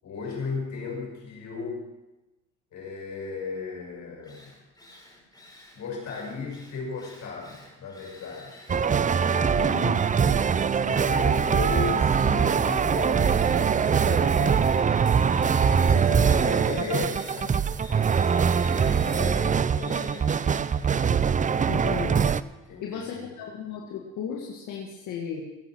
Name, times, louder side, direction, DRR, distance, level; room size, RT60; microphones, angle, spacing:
voice 1, 0.0-1.8 2.7-4.5 5.7-8.7 9.3-10.5 10.8-15.0 15.8-17.6 18.6-20.4 22.7-23.3, left 4 dB, 70° left, -1 dB, 5.9 m, -36 dB
Drill, 4.2-22.4, left 1 dB, 15° left, 5.0 m, -49 dB
sound 1, 8.7-22.4, right 6 dB, 25° right, 0.4 m, -23 dB
voice 2, 9.5-10.0 15.9-16.5 21.7-22.3 22.8-25.4, left 7 dB, 90° left, -1 dB, 1.8 m, -35 dB
17.0 x 9.0 x 6.1 m, 1.1 s
cardioid pair, 90°, 30 cm